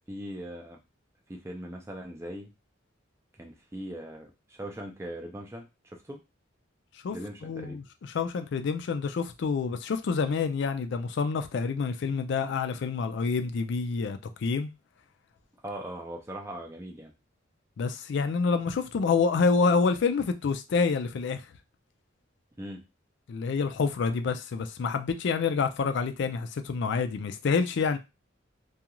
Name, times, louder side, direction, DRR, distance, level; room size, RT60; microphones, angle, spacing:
voice 1, 0.1-0.8 1.3-2.5 3.4-6.2 7.1-7.8 15.6-17.1 22.6-22.8, right 1 dB, 15° right, 0.4 m, -40 dB
voice 2, 7.4-7.8 8.1-14.7 17.8-21.4 23.3-28.0, left 5 dB, 60° left, 0.4 m, -27 dB
2.4 x 2.3 x 2.9 m
head